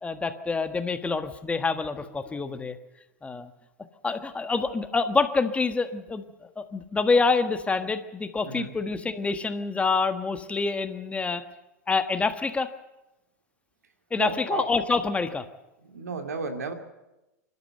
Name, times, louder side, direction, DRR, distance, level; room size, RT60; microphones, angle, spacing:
voice 1, 0.0-2.8 3.2-3.5 4.0-11.4 11.9-12.7 14.1-15.5, left 4 dB, 15° left, 9 dB, 1.5 m, -27 dB
voice 2, 14.2-14.7 15.9-16.7, right 4 dB, 80° right, 6 dB, 2.4 m, -32 dB
26.5 x 12.5 x 7.8 m, 0.98 s
hypercardioid pair, 90°, 9 cm